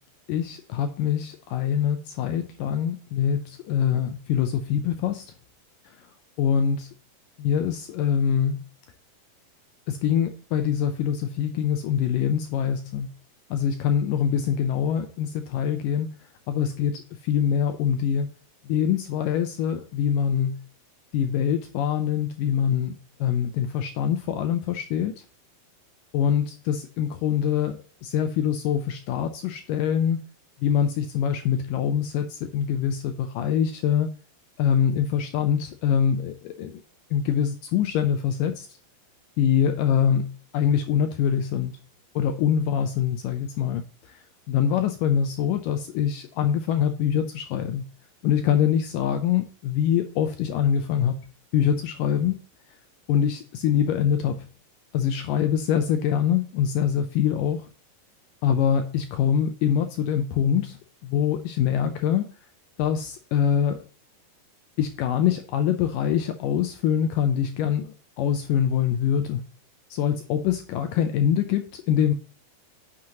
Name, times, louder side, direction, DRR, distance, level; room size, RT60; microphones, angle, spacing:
voice 1, 0.3-5.2 6.4-6.9 7.4-8.6 9.9-13.1 13.5-16.1 16.5-18.3 18.7-20.6 21.1-22.9 23.2-25.2 26.1-30.2 30.6-34.1 34.6-36.7 37.1-38.7 39.4-41.7 42.2-47.8 48.2-51.2 51.5-52.4 53.1-54.5 54.9-57.7 58.4-62.3 62.8-63.8 64.8-69.4 69.9-72.1, left 8 dB, 80° left, 7 dB, 2.0 m, -24 dB
9.5 x 6.4 x 2.9 m, 0.40 s
omnidirectional pair, 4.5 m